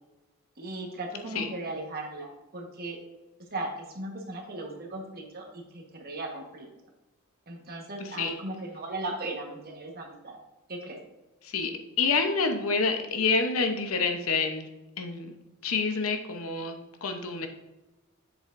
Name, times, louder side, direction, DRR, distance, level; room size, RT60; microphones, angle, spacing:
voice 1, 0.6-3.0 3.5-6.7 7.5-10.4 10.7-11.0, right 2 dB, 45° right, 1 dB, 1.3 m, -37 dB
voice 2, 8.0-8.4 11.4-11.7 12.0-14.7 15.0-15.4 15.6-17.5, left 4 dB, 70° left, 6 dB, 0.8 m, -28 dB
7.7 x 6.9 x 2.6 m, 1.1 s
head